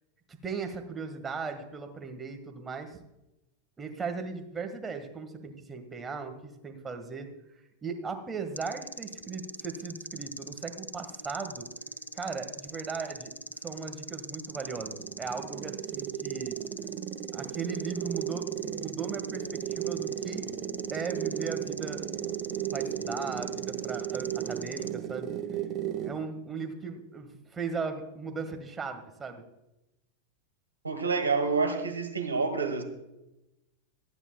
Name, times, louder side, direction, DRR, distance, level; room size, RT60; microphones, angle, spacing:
voice 1, 0.3-3.0 3.8-7.3 7.8-11.7 12.1-13.3 13.6-16.6 17.3-20.5 20.9-22.0 22.7-25.3 26.0-29.4, right 5 dB, 15° right, 5 dB, 1.5 m, -37 dB
sound 1, 8.6-24.9, right 1 dB, 90° left, 0.8 m, -43 dB
sound 2, 14.5-26.3, right 10 dB, 35° right, 1.3 m, -35 dB
voice 2, 30.8-32.8, right 4 dB, 80° right, 4 dB, 1.7 m, -28 dB
24.5 x 9.9 x 2.2 m, 0.92 s
figure-of-eight pair, 90°, 0 cm